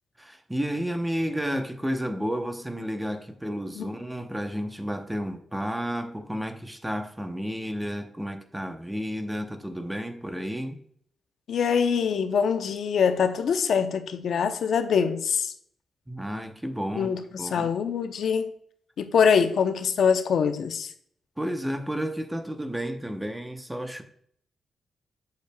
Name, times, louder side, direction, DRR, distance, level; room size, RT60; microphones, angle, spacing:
voice 1, 0.2-10.8 16.1-17.7 21.4-24.0, equal, 5° right, 0.7 m, -32 dB
voice 2, 11.5-15.5 16.9-18.5 19.0-20.9, left 6 dB, 70° left, 0.6 m, -24 dB
8.2 x 6.4 x 2.2 m
cardioid pair, 115°, 0 cm